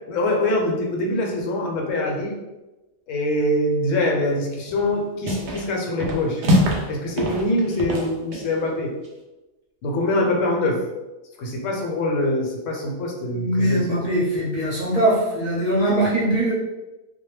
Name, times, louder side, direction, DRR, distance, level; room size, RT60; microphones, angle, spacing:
voice 1, 0.1-2.4 3.1-6.4 6.9-8.9 9.8-10.8 11.4-14.0, left 1 dB, 75° left, 0 dB, 0.9 m, -24 dB
sound 1, 4.7-4.9 5.2-5.7 6.0-6.9 7.2-8.5, equal, 80° right, 0.4 m, -23 dB
voice 2, 13.3-16.5, right 1 dB, 40° right, -7 dB, 0.6 m, -21 dB
2.2 x 2.1 x 3.0 m, 1.1 s
omnidirectional pair, 1.4 m